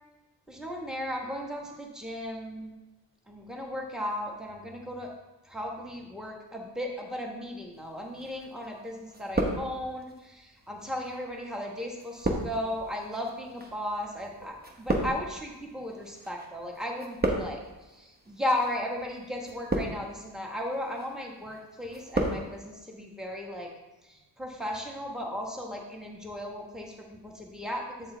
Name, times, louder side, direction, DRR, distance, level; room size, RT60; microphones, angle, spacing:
voice 1, 0.5-2.7 3.3-5.1 5.4-23.7 24.0-28.2, left 1 dB, ahead, 0 dB, 1.2 m, -36 dB
sound 1, 8.2-8.8 9.1-10.1 10.8-16.5 16.7-17.8 18.5-18.8 19.4-20.2 20.7-21.1 21.5-22.4 22.7-22.8, right 2 dB, 20° right, 1.0 m, -32 dB
8.0 x 5.3 x 3.8 m, 1.1 s
wide cardioid pair, 110°, 43 cm